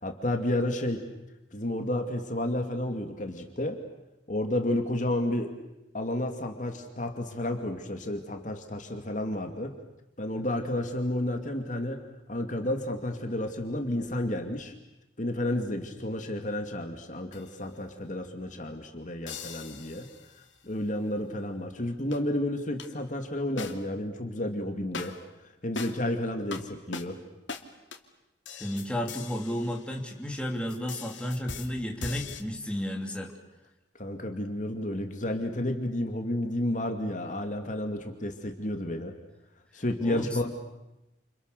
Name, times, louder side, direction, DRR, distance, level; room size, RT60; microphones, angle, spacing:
voice 1, 0.0-1.0 1.5-3.8 4.3-5.5 5.9-9.7 10.2-12.0 12.3-14.7 15.2-20.1 20.4-25.2 25.6-27.2 34.0-39.2 39.7-40.5, left 1 dB, 40° left, 4 dB, 2.5 m, -31 dB
sound 1, 17.3-17.6 19.3-20.5 22.1-22.2 22.8-22.9 23.6-24.1 24.9-25.3 25.7-26.1 26.5-26.6 26.9-27.1 27.5-27.6 27.9-28.0 28.4-30.3 30.7-32.4, left 4 dB, 90° left, 2.6 m, -40 dB
voice 2, 28.5-33.3 40.0-40.4, equal, 5° left, 0 dB, 3.1 m, -33 dB
30.0 x 29.0 x 6.8 m, 0.95 s
head